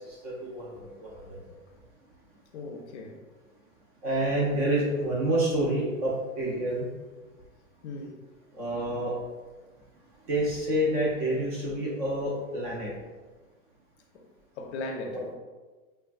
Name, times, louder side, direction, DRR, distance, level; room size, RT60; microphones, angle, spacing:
voice 1, 0.1-1.4 4.0-6.9 8.6-9.1 10.3-12.9 15.1-15.2, right 1 dB, 30° right, 0.4 m, -28 dB
voice 2, 2.5-3.2 7.8-8.2 14.1-14.3 14.6-15.3, left 2 dB, 50° left, 0.5 m, -38 dB
3.2 x 2.1 x 2.4 m
hypercardioid pair, 140°, 44 cm